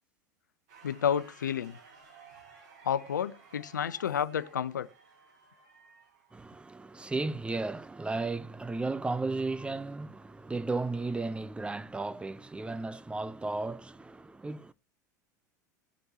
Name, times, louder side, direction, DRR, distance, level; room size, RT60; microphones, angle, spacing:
sound 1, 0.7-6.8, right 5 dB, 60° right, 6.7 m, -56 dB
voice 1, 0.8-1.8 2.8-4.9, left 8 dB, 85° left, 0.6 m, -30 dB
voice 2, 6.3-14.7, right 3 dB, 10° right, 0.7 m, -34 dB
18.5 x 7.8 x 2.8 m
hypercardioid pair, 80°, 10 cm